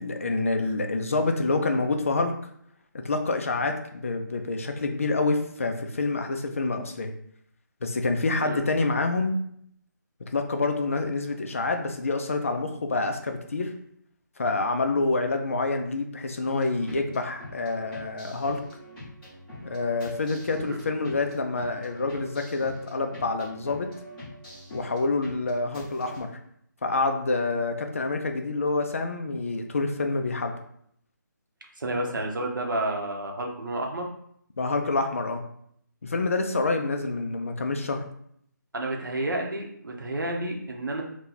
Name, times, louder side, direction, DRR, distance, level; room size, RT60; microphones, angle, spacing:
voice 1, 0.0-2.3 3.0-7.1 7.8-9.3 10.3-13.7 14.4-18.6 19.6-23.9 24.7-26.3 26.8-30.5 31.9-32.0 34.6-35.4 36.0-38.0, left 3 dB, 40° left, 5 dB, 0.4 m, -27 dB
sound 1, 16.5-26.2, equal, 5° left, 1.0 m, -44 dB
voice 2, 31.8-34.1 38.7-41.0, right 1 dB, 80° right, 1 dB, 0.8 m, -30 dB
2.9 x 2.2 x 3.8 m, 0.68 s
hypercardioid pair, 170°, 11 cm